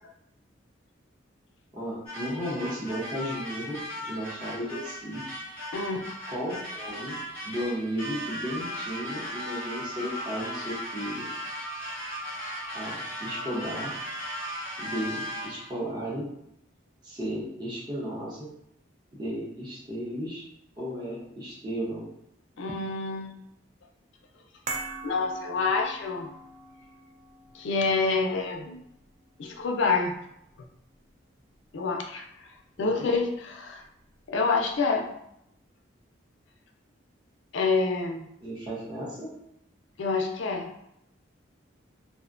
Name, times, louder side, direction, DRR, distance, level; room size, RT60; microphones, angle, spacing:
voice 1, 1.7-5.4 6.3-7.2 7.4-11.2 12.7-13.9 14.8-16.3 17.0-18.5 19.1-20.4 20.8-22.1 32.8-33.1 38.4-39.3, equal, 20° right, -8 dB, 0.7 m, -34 dB
sound 1, 2.1-15.7, equal, 10° left, 0.8 m, -37 dB
voice 2, 5.7-6.1 22.6-23.3 25.0-26.3 27.5-28.8 29.4-30.2 31.7-33.8 34.3-35.1 37.5-38.3 40.0-40.9, left 4 dB, 75° left, 3 dB, 0.4 m, -27 dB
sound 2, 24.7-31.1 31.3-31.5, right 3 dB, 40° right, 0.3 m, -43 dB
2.5 x 2.1 x 2.4 m, 0.77 s
head